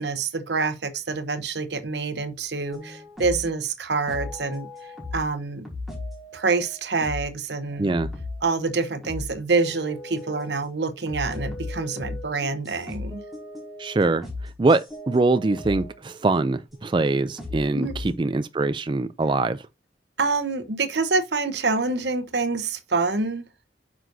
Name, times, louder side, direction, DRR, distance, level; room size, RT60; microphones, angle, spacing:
voice 1, 0.0-4.7 5.1-5.7 6.3-7.9 8.4-13.2 17.7-18.0 20.2-23.4, right 4 dB, 75° right, 1.0 m, -26 dB
sound 1, 2.7-3.5 4.1-5.3 5.7-7.4 7.7-8.7 9.0-10.6 11.1-16.0 16.7-18.2, left 2 dB, ahead, 3.8 m, -37 dB
voice 2, 7.8-8.1 13.8-19.6, right 3 dB, 25° right, 0.4 m, -23 dB
9.3 x 6.0 x 2.7 m
head